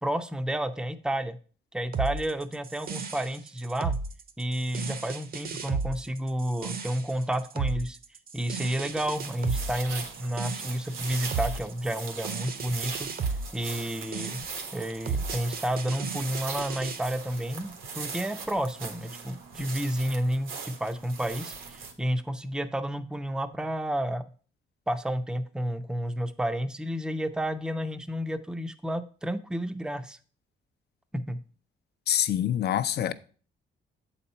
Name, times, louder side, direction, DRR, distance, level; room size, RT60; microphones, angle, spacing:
voice 1, 0.0-1.4 1.7-4.0 4.4-8.0 8.3-13.1 13.5-14.4 14.7-24.2 24.9-30.2 31.1-31.4, equal, 5° right, 0.5 m, -31 dB
sound 1, 1.9-17.0, right 5 dB, 50° right, 0.8 m, -34 dB
sound 2, 8.9-21.9, right 5 dB, 90° right, 1.5 m, -40 dB
voice 2, 32.1-33.1, left 10 dB, 55° left, 0.6 m, -25 dB
7.7 x 4.3 x 5.5 m
cardioid pair, 90°, 20 cm